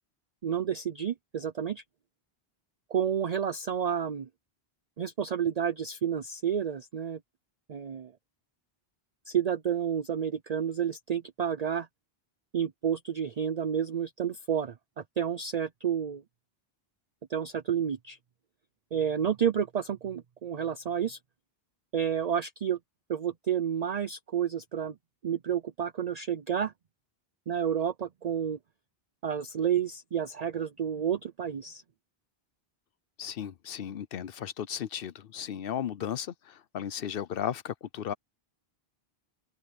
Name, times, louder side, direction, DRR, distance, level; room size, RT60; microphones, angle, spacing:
voice 1, 0.4-1.8 2.9-4.3 5.0-7.2 7.7-8.1 9.3-11.9 12.5-16.2 17.3-18.2 18.9-21.2 21.9-22.8 23.1-24.9 25.2-26.7 27.5-28.6 29.2-31.8, right 8 dB, 45° right, 0.6 m, -30 dB
voice 2, 33.2-38.1, left 9 dB, 65° left, 0.9 m, -35 dB
open air
omnidirectional pair, 1.0 m